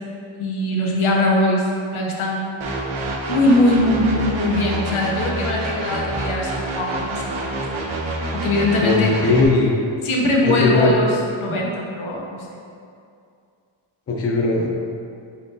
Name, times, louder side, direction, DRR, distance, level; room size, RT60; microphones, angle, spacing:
voice 1, 0.3-2.4 3.3-7.6 8.3-9.1 10.0-12.5, left 1 dB, 90° left, -2 dB, 0.8 m, -21 dB
sound 1, 2.6-9.4, right 2 dB, 80° right, 0.7 m, -27 dB
voice 2, 8.8-9.7 10.4-10.9 14.1-14.7, left 2 dB, 30° left, -2 dB, 0.4 m, -18 dB
4.3 x 3.8 x 2.6 m, 2.4 s
wide cardioid pair, 170°, 47 cm